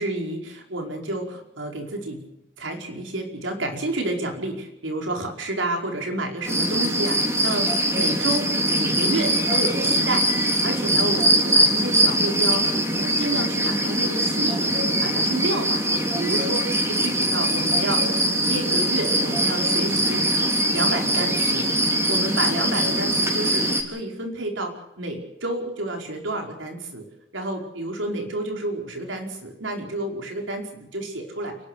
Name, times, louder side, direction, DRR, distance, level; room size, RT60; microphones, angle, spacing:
voice 1, 0.0-2.2 2.6-18.1 18.5-20.2 20.7-21.7 22.1-27.1 27.3-31.6, right 2 dB, 85° right, 2 dB, 5.1 m, -30 dB
sound 1, 6.4-23.8, right 1 dB, 15° right, 3.6 m, -22 dB
30.0 x 12.0 x 8.3 m, 0.86 s
head